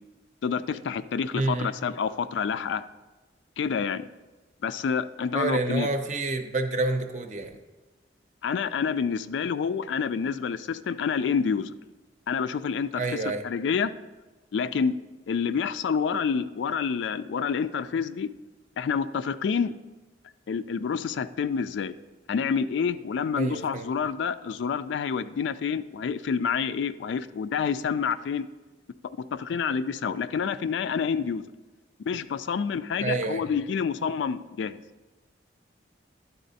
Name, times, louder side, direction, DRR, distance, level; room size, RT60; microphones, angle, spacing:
voice 1, 0.4-2.8 3.6-4.1 4.6-5.9 8.4-11.7 12.3-13.9 14.5-15.0 15.3-18.3 18.8-19.7 20.5-21.9 22.3-28.5 29.3-31.5 32.1-34.8, left 6 dB, 85° left, 13 dB, 0.3 m, -28 dB
voice 2, 1.3-1.7 5.3-7.6 13.0-13.4 23.4-23.9 33.0-33.4, right 3 dB, 40° right, 7 dB, 0.6 m, -28 dB
11.0 x 4.2 x 4.0 m, 1.2 s
head